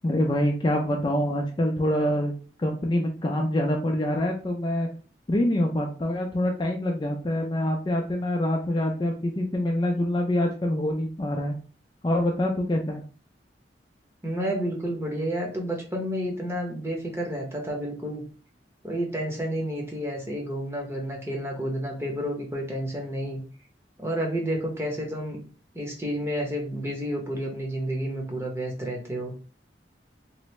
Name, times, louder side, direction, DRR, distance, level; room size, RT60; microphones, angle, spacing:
voice 1, 0.0-2.3 2.6-4.9 5.3-11.6 12.0-13.0, left 1 dB, 25° left, 1 dB, 0.4 m, -25 dB
voice 2, 14.2-18.2 18.8-23.4 24.0-25.4 25.7-29.3, equal, 15° right, 0 dB, 0.8 m, -30 dB
3.0 x 2.6 x 3.1 m, 0.38 s
head